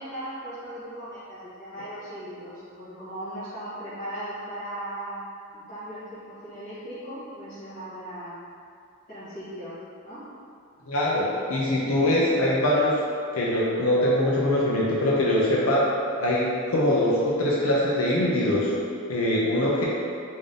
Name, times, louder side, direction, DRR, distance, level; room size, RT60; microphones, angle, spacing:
voice 1, 0.0-5.2 5.5-8.3 9.1-9.8 10.0-10.3, right 1 dB, 45° left, -16 dB, 1.3 m, -38 dB
voice 2, 10.9-12.9 13.3-15.8 16.2-18.7 19.1-19.8, left 1 dB, 85° left, -5 dB, 0.6 m, -23 dB
3.6 x 2.6 x 3.4 m, 2.4 s
head